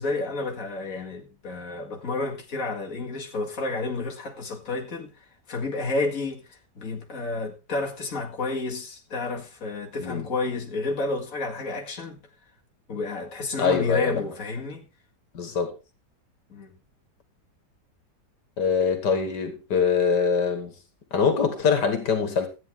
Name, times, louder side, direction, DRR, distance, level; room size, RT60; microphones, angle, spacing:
voice 1, 0.0-5.1 5.5-6.4 6.8-12.2 12.9-14.9 16.5-16.7, left 3 dB, 55° left, 2.5 m, -30 dB
voice 2, 13.6-14.2 15.3-15.7 18.6-20.7 21.1-22.5, left 6 dB, 85° left, 2.3 m, -23 dB
13.5 x 9.1 x 3.6 m
omnidirectional pair, 1.8 m